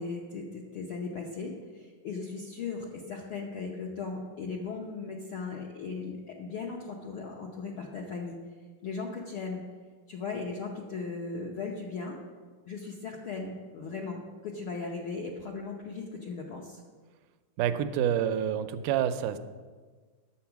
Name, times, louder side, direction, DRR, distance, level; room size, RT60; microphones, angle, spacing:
voice 1, 0.0-8.4 8.8-9.6 10.1-12.2 12.7-16.8, left 4 dB, 75° left, -1 dB, 1.2 m, -37 dB
voice 2, 17.6-19.4, right 9 dB, 80° right, 10 dB, 2.1 m, -28 dB
10.0 x 8.0 x 5.8 m, 1.5 s
omnidirectional pair, 3.7 m